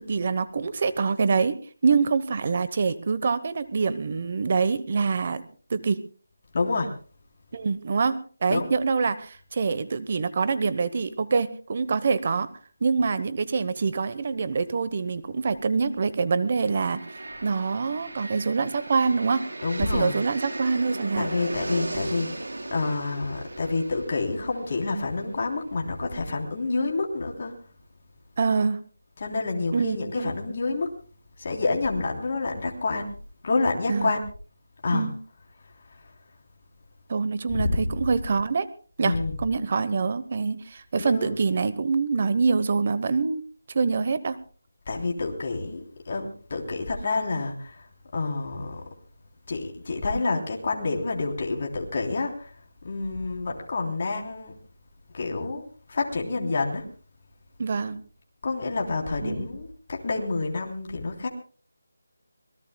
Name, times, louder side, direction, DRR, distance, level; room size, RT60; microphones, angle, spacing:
voice 1, 0.0-5.4 5.7-6.0 7.5-12.5 12.8-17.1 17.4-19.5 19.8-21.3 28.4-28.8 29.7-30.3 33.9-34.1 34.9-35.1 37.1-38.7 39.0-43.4 43.7-44.4 57.6-58.0 59.2-59.5, right 4 dB, 35° right, 14 dB, 0.9 m, -25 dB
voice 2, 6.5-6.9 8.5-8.7 19.6-20.2 21.2-27.6 29.2-31.0 31.4-33.1 33.4-34.2 34.8-35.2 36.0-36.1 37.5-37.9 39.0-39.4 41.0-41.4 44.9-47.9 48.1-48.8 49.5-52.5 52.8-54.6 55.1-56.9 58.4-61.3, left 3 dB, 40° left, 1 dB, 3.2 m, -28 dB
sound 1, 16.6-26.3, right 2 dB, 90° right, 4.3 m, -37 dB
25.5 x 18.5 x 2.2 m, 0.40 s
figure-of-eight pair, 175°, 0 cm